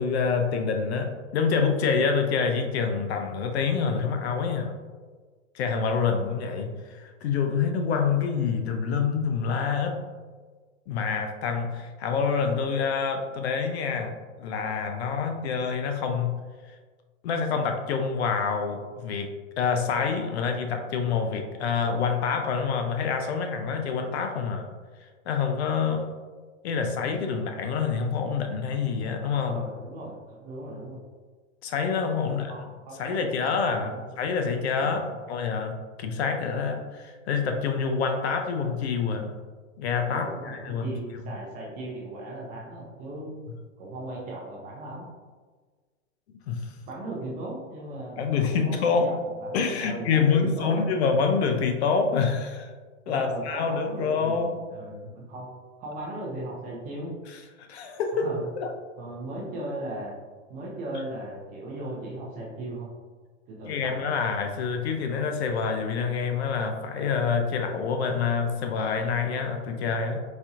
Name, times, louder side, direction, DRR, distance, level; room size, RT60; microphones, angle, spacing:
voice 1, 0.0-4.7 5.5-10.0 10.9-16.4 17.2-19.3 19.6-24.7 25.3-26.1 26.6-29.6 31.6-32.5 33.0-39.3 39.8-40.9 46.5-46.7 48.2-49.1 49.5-52.7 53.1-54.6 57.7-58.3 58.6-58.7 63.6-70.2, left 5 dB, 55° left, 5 dB, 0.5 m, -27 dB
voice 2, 29.4-31.0 32.2-34.1 34.8-35.2 36.1-36.2 40.1-43.4 43.8-45.1 46.9-51.0 53.1-55.5 55.8-57.1 58.2-58.5 59.0-60.1 60.5-62.9 63.5-64.0, right 1 dB, 20° right, -3 dB, 0.6 m, -37 dB
4.1 x 2.7 x 2.4 m, 1.4 s
hypercardioid pair, 145°, 39 cm